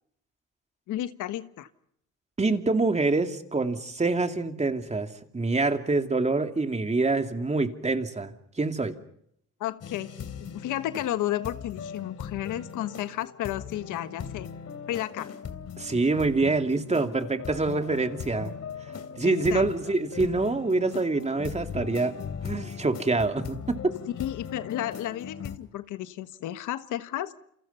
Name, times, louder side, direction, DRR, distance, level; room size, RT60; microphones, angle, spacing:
voice 1, 0.9-1.7 9.6-14.5 14.9-15.3 19.2-19.9 24.2-27.4, left 13 dB, 90° left, 11 dB, 1.4 m, -33 dB
voice 2, 2.4-5.1 5.3-8.3 8.6-8.9 15.8-18.5 19.2-22.1 22.4-23.9, right 3 dB, 20° right, 6 dB, 2.7 m, -26 dB
sound 1, 9.8-25.6, left 7 dB, 55° left, 3.0 m, -39 dB
29.0 x 28.0 x 5.7 m, 0.72 s
cardioid pair, 90°, 30 cm